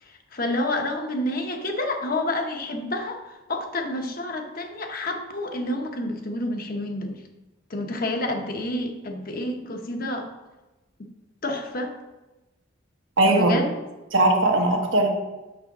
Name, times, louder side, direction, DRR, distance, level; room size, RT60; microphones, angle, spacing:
voice 1, 0.1-7.2 7.7-10.3 11.4-11.9 13.3-13.7, left 1 dB, 45° left, 4 dB, 0.9 m, -29 dB
voice 2, 13.2-13.5 14.1-15.1, right 2 dB, 80° right, 1 dB, 1.2 m, -19 dB
6.2 x 6.2 x 4.0 m, 1.1 s
head